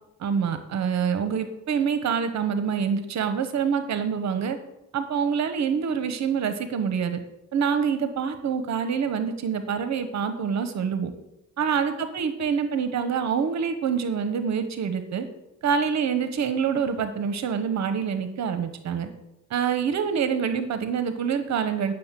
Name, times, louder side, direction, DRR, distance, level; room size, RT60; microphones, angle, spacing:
voice 1, 0.2-4.6 4.9-7.2 7.5-11.1 11.6-15.3 15.6-19.1 19.5-21.9, right 6 dB, 65° right, 9 dB, 1.1 m, -26 dB
9.9 x 6.5 x 7.5 m, 0.89 s
cardioid pair, 90°, 30 cm